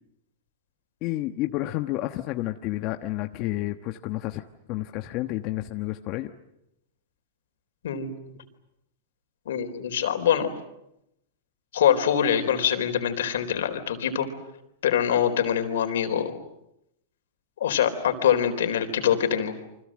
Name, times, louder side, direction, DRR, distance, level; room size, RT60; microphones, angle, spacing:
voice 1, 1.0-4.4 4.7-6.3, left 16 dB, 40° left, 6 dB, 1.2 m, -30 dB
voice 2, 9.5-10.5 11.7-14.3 14.8-16.3 17.6-19.5, left 9 dB, 80° left, 7 dB, 4.0 m, -24 dB
28.5 x 25.0 x 7.7 m, 0.83 s
hypercardioid pair, 140°, 0 cm